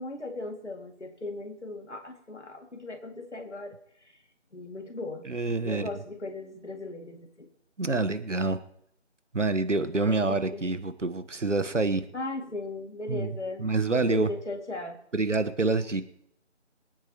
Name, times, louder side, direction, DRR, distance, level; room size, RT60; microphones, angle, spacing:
voice 1, 0.0-3.8 4.5-5.3 5.6-7.5 9.9-10.6 12.1-13.7 13.9-15.0, left 2 dB, 70° left, 3 dB, 2.6 m, -37 dB
voice 2, 5.3-5.8 7.8-8.6 9.3-12.0 13.1-13.3 13.6-14.3 15.1-16.0, right 3 dB, 80° right, 11 dB, 1.4 m, -27 dB
26.5 x 9.2 x 3.1 m, 0.74 s
figure-of-eight pair, 170°, 36 cm